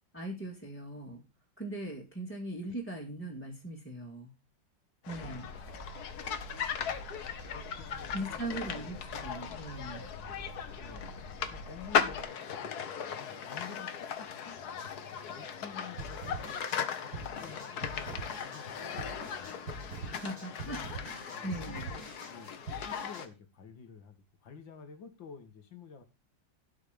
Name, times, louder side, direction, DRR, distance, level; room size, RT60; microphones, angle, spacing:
voice 1, 0.1-1.2 1.6-4.3 5.1-5.5 8.1-10.1 20.0-20.8 21.0-21.9, right 1 dB, 5° left, -4 dB, 1.9 m, -40 dB
sound 1, 5.0-23.3, left 7 dB, 60° left, 1.5 m, -38 dB
sound 2, 5.1-12.2, equal, 45° right, 8.2 m, -48 dB
voice 2, 5.2-5.6 7.5-9.0 9.8-10.1 10.8-14.6 15.3-19.6 19.9-20.1 20.6-21.8 22.3-26.0, left 6 dB, 85° left, 7 dB, 2.4 m, -51 dB
sound 3, 16.0-23.2, right 3 dB, 80° right, 7.3 m, -44 dB
12.5 x 5.7 x 5.1 m, 0.27 s
omnidirectional pair, 2.0 m